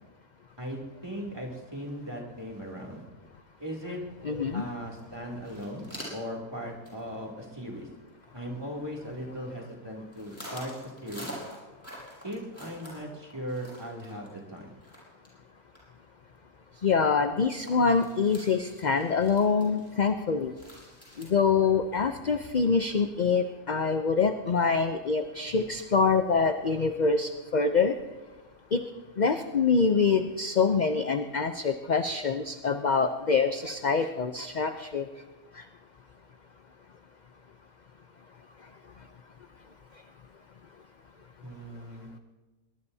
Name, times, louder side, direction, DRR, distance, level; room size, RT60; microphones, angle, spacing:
voice 1, 0.6-3.0 3.6-4.0 4.5-7.9 8.3-10.7 11.0-11.3 12.2-14.7 41.4-42.1, equal, 15° right, -1 dB, 2.8 m, -38 dB
voice 2, 4.2-4.6 16.8-20.5 21.2-28.0 28.7-28.8 29.2-35.1 35.6-35.7, left 5 dB, 45° left, 7 dB, 0.6 m, -25 dB
sound 1, 4.7-4.8 5.0-5.1 5.3-6.4 6.8-7.1 7.4-7.5 7.9-8.5 9.2-9.7 10.1-15.4 15.7-15.8 16.3-16.4 16.9-17.0 17.3-17.4 17.7-21.2, equal, 10° left, 6.8 m, -46 dB
22.0 x 22.0 x 2.8 m, 1.2 s
omnidirectional pair, 1.5 m